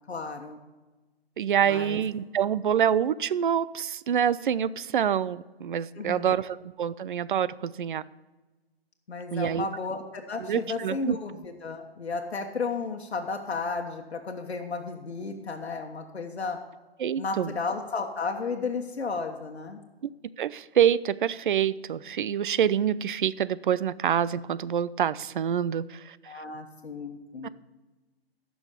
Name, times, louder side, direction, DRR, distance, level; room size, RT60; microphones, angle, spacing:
voice 1, 0.1-0.6 1.6-2.0 6.0-6.4 9.1-16.6 17.2-19.8 26.3-27.5, left 4 dB, 85° left, 3 dB, 1.3 m, -33 dB
voice 2, 1.4-8.0 9.3-9.7 10.5-11.2 17.0-17.5 20.4-26.2 27.4-27.5, right 9 dB, 55° right, 18 dB, 0.4 m, -26 dB
14.5 x 6.2 x 5.2 m, 1.2 s
hypercardioid pair, 155°, 31 cm